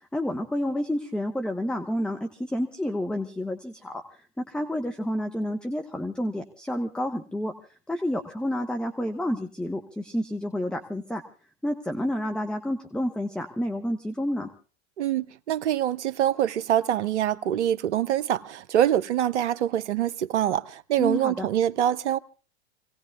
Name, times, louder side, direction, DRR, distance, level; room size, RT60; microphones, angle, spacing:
voice 1, 0.1-4.0 4.4-7.5 7.9-11.2 11.6-14.5 21.0-21.5, left 1 dB, 5° left, 1.0 m, -29 dB
voice 2, 15.0-22.2, right 11 dB, 75° right, 0.7 m, -25 dB
28.5 x 18.0 x 2.4 m
hypercardioid pair, 100°, 34 cm